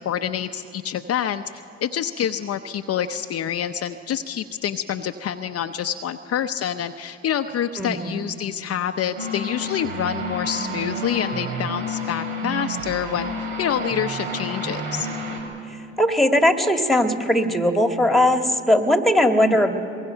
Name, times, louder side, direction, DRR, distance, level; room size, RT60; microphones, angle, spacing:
voice 1, 0.0-1.4 1.8-15.1 19.5-19.6, left 9 dB, 45° left, 7 dB, 0.8 m, -27 dB
voice 2, 7.8-8.2 16.0-19.7, left 1 dB, ahead, 5 dB, 1.9 m, -19 dB
sound 1, 9.2-15.4, equal, 75° right, 4.0 m, -30 dB
23.5 x 22.0 x 5.7 m, 2.6 s
hypercardioid pair, 65°, 33 cm